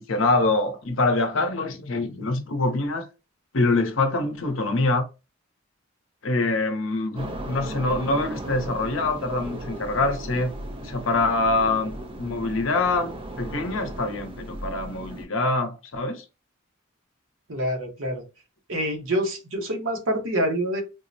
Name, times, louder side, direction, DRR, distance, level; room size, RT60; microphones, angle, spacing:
voice 1, 0.0-3.0 3.5-5.1 6.2-10.6 10.8-16.2, left 2 dB, 70° left, 0.7 m, -25 dB
sound 1, 7.2-15.3, right 1 dB, 25° right, 0.4 m, -36 dB
voice 2, 17.5-18.2 18.7-20.8, equal, 70° right, 0.9 m, -26 dB
3.7 x 2.0 x 2.6 m
head